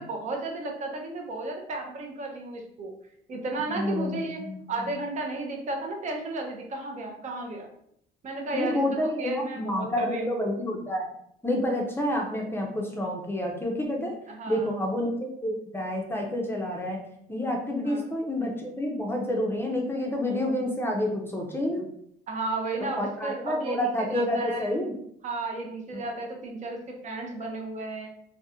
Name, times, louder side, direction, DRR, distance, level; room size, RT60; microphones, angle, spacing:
voice 1, 0.0-2.9 3.3-4.4 4.7-7.7 8.2-8.8 9.2-10.3 14.3-14.8 17.8-18.1 22.3-24.7 25.2-28.1, right 2 dB, 40° right, 1 dB, 0.5 m, -33 dB
voice 2, 3.7-4.6 8.5-11.1 11.4-14.2 14.5-17.0 17.3-21.9 22.8-24.9, left 1 dB, 15° left, 0 dB, 0.5 m, -29 dB
2.5 x 2.1 x 2.7 m, 0.71 s
cardioid pair, 100°, 18 cm